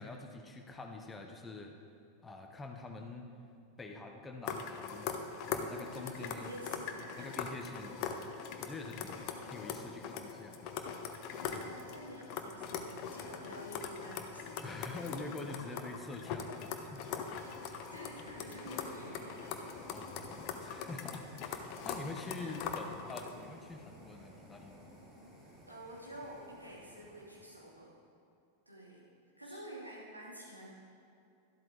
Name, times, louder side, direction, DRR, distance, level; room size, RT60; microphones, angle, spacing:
voice 1, 0.0-1.7 2.2-3.3 3.8-5.1 5.4-6.5 7.2-8.3 8.6-10.6 11.5-11.8 14.6-17.2 19.9-24.8, left 3 dB, 15° left, 4 dB, 1.1 m, -46 dB
sound 1, 4.4-23.4, left 6 dB, 40° left, 0.9 m, -42 dB
voice 2, 6.0-7.3 9.3-9.7 11.4-14.9 15.7-15.8 17.3-17.6 17.9-19.5 22.4-22.5 25.7-27.9 28.7-29.0 29.4-30.7, equal, 85° right, -5 dB, 2.9 m, -49 dB
sound 2, 12.5-27.9, equal, 20° right, 3.2 m, -56 dB
12.5 x 12.0 x 3.9 m, 2.5 s
figure-of-eight pair, 90°, 0 cm